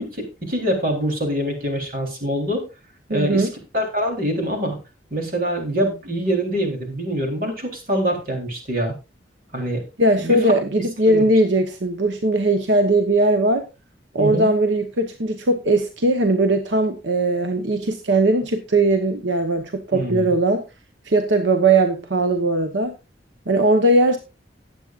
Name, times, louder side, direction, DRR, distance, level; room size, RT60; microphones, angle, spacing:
voice 1, 0.0-2.6 3.1-3.5 3.7-4.8 5.1-8.9 9.5-9.8 10.2-10.4 11.1-11.3 14.2-14.5 19.9-20.3, equal, 50° right, 3 dB, 3.7 m, -24 dB
voice 2, 3.1-3.5 10.0-13.6 14.1-20.6 21.1-22.9 23.5-24.2, right 2 dB, 85° right, 7 dB, 1.1 m, -19 dB
18.0 x 8.1 x 2.5 m, 0.27 s
head